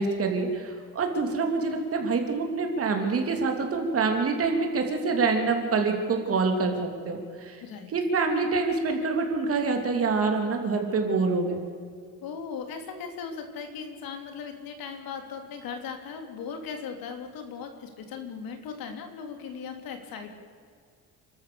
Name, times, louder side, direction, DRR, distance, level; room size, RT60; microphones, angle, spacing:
voice 1, 0.0-7.6 7.9-11.6, right 4 dB, 40° right, 4 dB, 3.2 m, -26 dB
voice 2, 7.6-7.9 12.2-20.3, left 6 dB, 80° left, 5 dB, 3.3 m, -38 dB
30.0 x 13.0 x 7.1 m, 2.1 s
cardioid pair, 165°, 35 cm